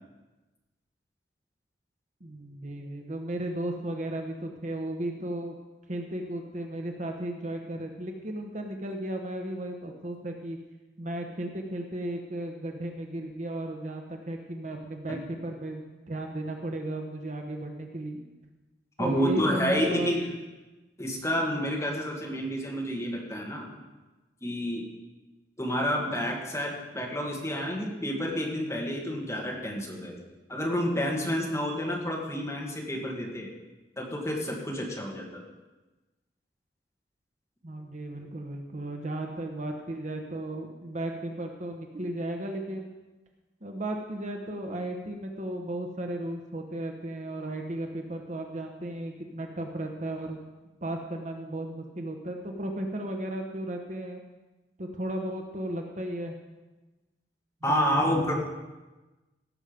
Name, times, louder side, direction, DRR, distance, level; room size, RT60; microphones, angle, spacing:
voice 1, 2.2-5.6 5.9-10.6 11.0-18.2 19.0-20.1 37.6-43.0 43.6-50.4 50.8-54.2 54.8-56.3 57.7-58.0, right 1 dB, 45° right, 3 dB, 1.1 m, -35 dB
voice 2, 19.0-20.3 21.0-23.7 24.4-24.8 25.6-30.2 30.5-33.5 34.0-35.4 57.6-58.3, equal, 15° left, -1 dB, 2.0 m, -29 dB
17.0 x 6.3 x 5.2 m, 1.1 s
head